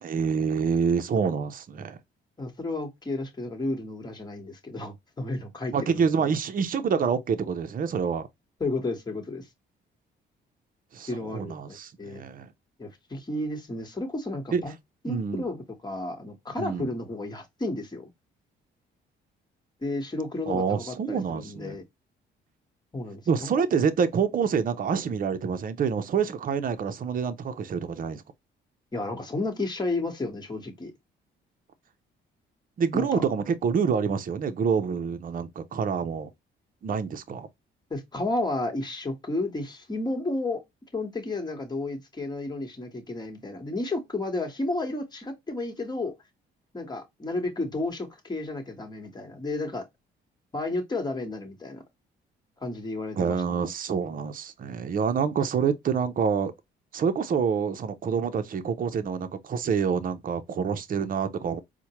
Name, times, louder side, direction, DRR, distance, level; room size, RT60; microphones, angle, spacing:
voice 1, 0.0-2.0 5.7-8.3 10.9-12.5 14.5-14.6 15.1-15.5 16.6-16.9 20.5-21.8 23.3-28.2 32.8-36.3 36.8-37.5 53.2-56.5 56.9-61.6, right 6 dB, 45° right, 0.6 m, -27 dB
voice 2, 2.4-6.4 8.6-9.5 11.1-12.2 12.8-14.7 15.0-18.1 19.8-21.8 22.9-23.7 28.9-30.9 32.9-33.2 37.9-40.6 40.9-46.1 46.7-49.9 50.5-51.8 52.6-53.7, left 2 dB, 20° left, 1.2 m, -32 dB
4.4 x 2.1 x 2.9 m
cardioid pair, 90°, 20 cm